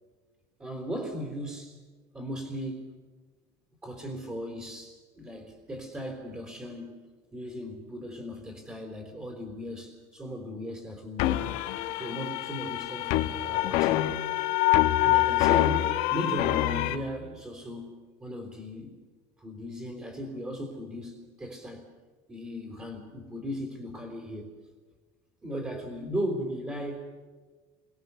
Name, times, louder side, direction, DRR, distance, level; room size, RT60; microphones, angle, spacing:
voice 1, 0.6-1.8 2.1-2.8 3.8-7.0 7.3-11.6 11.9-14.1 15.0-19.0 19.4-21.8 22.3-24.5 25.4-27.2, equal, 15° right, 1 dB, 3.7 m, -37 dB
sound 1, 11.2-16.9, left 15 dB, 65° left, 1.5 m, -25 dB
30.0 x 24.0 x 6.9 m, 1.4 s
cardioid pair, 160°, 14 cm